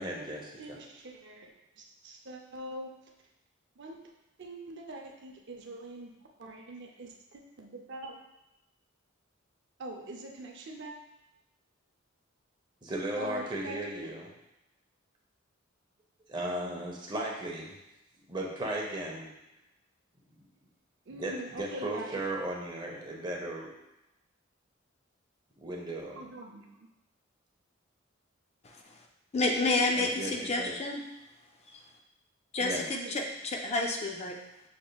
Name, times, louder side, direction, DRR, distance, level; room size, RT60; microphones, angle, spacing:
voice 1, 0.0-0.8 12.8-14.3 16.3-17.8 18.3-19.3 21.1-23.7 25.6-26.2 29.9-30.8 32.6-32.9, right 1 dB, 25° right, -2 dB, 0.8 m, -36 dB
voice 2, 0.6-1.5 1.8-2.9 3.8-4.0 4.4-6.1 6.4-8.2 9.8-10.9 13.2-14.2 21.1-22.2 26.2-26.9 32.9-33.2, right 1 dB, 60° right, 1 dB, 0.6 m, -43 dB
voice 3, 29.3-31.0 32.5-34.4, left 2 dB, 30° left, 1 dB, 0.4 m, -29 dB
6.3 x 3.6 x 2.3 m, 0.90 s
head